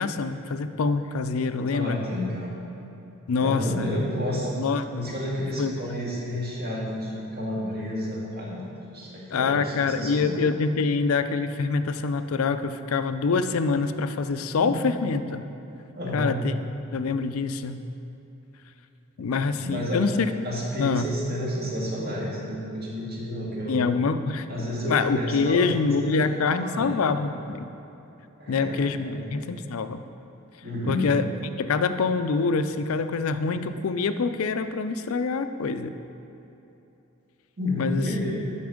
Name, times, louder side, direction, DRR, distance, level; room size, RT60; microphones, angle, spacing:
voice 1, 0.0-2.0 3.3-4.0 4.6-5.2 5.6-5.7 9.3-15.4 16.1-16.6 16.9-17.8 19.2-20.3 20.8-21.1 23.7-24.5 24.9-27.7 28.5-30.0 30.9-31.2 31.6-35.9 37.8-38.1, left 4 dB, 80° left, 10 dB, 0.4 m, -25 dB
voice 2, 1.7-2.5 3.4-4.6 4.9-10.4 14.6-14.9 15.9-16.4 19.5-20.1 20.4-23.8 24.5-26.2 26.6-26.9 28.4-28.8 29.1-29.2 30.6-31.1 37.6-38.3, equal, 50° right, -5 dB, 2.0 m, -31 dB
9.5 x 5.9 x 5.0 m, 3.0 s
head